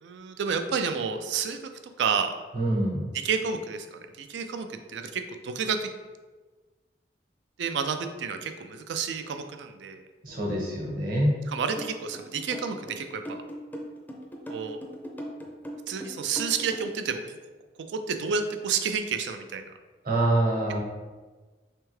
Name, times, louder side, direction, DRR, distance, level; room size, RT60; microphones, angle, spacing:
voice 1, 0.0-1.6 2.0-2.3 3.1-5.9 7.6-10.0 11.5-13.4 14.5-14.8 15.9-17.4 17.9-19.7, right 6 dB, 85° right, 7 dB, 0.4 m, -30 dB
voice 2, 2.5-3.0 10.2-11.4 20.0-20.8, right 1 dB, 55° right, -2 dB, 1.0 m, -25 dB
sound 1, 11.8-17.0, equal, 10° left, 0.5 m, -39 dB
3.4 x 3.3 x 3.2 m, 1.3 s
head